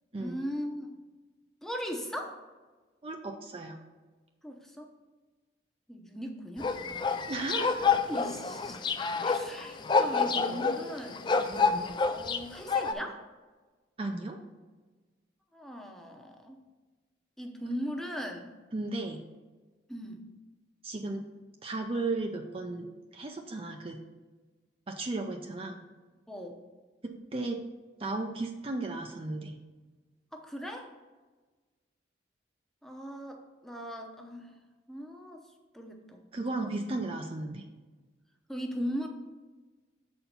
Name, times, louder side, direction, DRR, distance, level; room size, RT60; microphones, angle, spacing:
voice 1, 0.2-0.9 1.6-2.4 4.4-4.9 5.9-7.0 8.1-8.8 9.2-11.2 12.1-13.2 15.5-16.6 17.4-18.6 19.9-20.2 26.3-26.6 30.3-30.9 32.8-34.5 34.9-35.4 35.7-36.2 36.6-36.8 38.5-39.1, equal, ahead, 2 dB, 0.7 m, -38 dB
voice 2, 3.0-3.8 7.3-8.0 14.0-14.4 18.7-19.2 20.8-21.2 21.6-24.0 24.9-25.8 27.0-27.6 28.0-29.5 36.3-37.6, right 2 dB, 30° right, 3 dB, 0.5 m, -35 dB
sound 1, 6.6-12.9, left 4 dB, 25° left, 0.3 m, -28 dB
6.9 x 4.4 x 5.3 m, 1.3 s
head